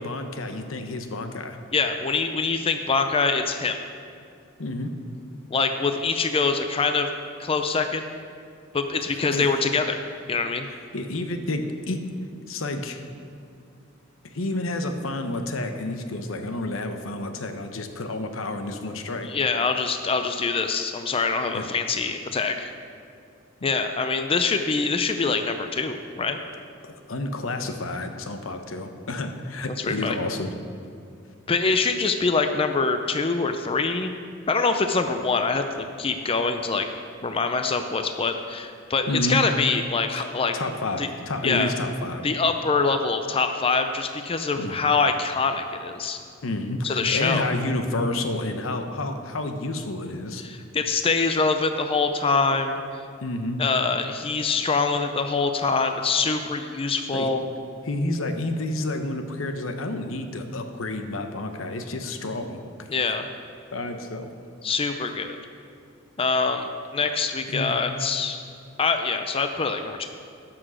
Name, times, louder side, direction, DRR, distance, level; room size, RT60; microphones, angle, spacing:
voice 1, 0.0-1.6 4.6-4.9 9.3-9.5 10.7-12.0 12.5-13.0 14.2-19.3 21.5-21.7 26.8-30.5 39.1-39.4 40.2-40.3 40.5-42.3 44.6-44.8 46.4-50.4 53.2-53.6 57.1-57.3 57.8-62.9 63.7-64.3 67.5-67.7, left 2 dB, 80° left, 6 dB, 0.9 m, -30 dB
voice 2, 1.7-3.8 5.5-7.1 7.4-8.1 8.7-10.0 10.3-10.7 19.2-22.7 23.6-26.4 29.9-30.2 31.5-34.1 34.5-36.9 37.2-40.5 41.0-41.1 41.4-41.7 42.2-46.2 46.8-47.4 50.4-52.8 53.6-57.4 62.9-63.3 64.6-65.4 66.2-68.4 68.8-70.1, left 4 dB, 30° left, 7 dB, 0.5 m, -24 dB
12.5 x 6.1 x 6.4 m, 2.4 s
head